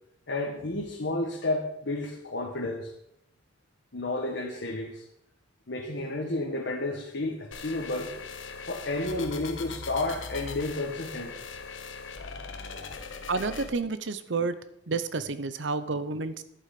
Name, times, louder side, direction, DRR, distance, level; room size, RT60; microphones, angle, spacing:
voice 1, 0.3-2.9 3.9-5.0 5.7-8.1 8.7-11.4 12.6-12.9, left 2 dB, 65° left, 0 dB, 1.4 m, -31 dB
sound 1, 7.5-13.7, left 4 dB, 90° left, 1.2 m, -40 dB
voice 2, 13.3-14.5 14.9-16.4, right 4 dB, 70° right, 13 dB, 0.8 m, -30 dB
11.0 x 8.4 x 5.9 m, 0.80 s
head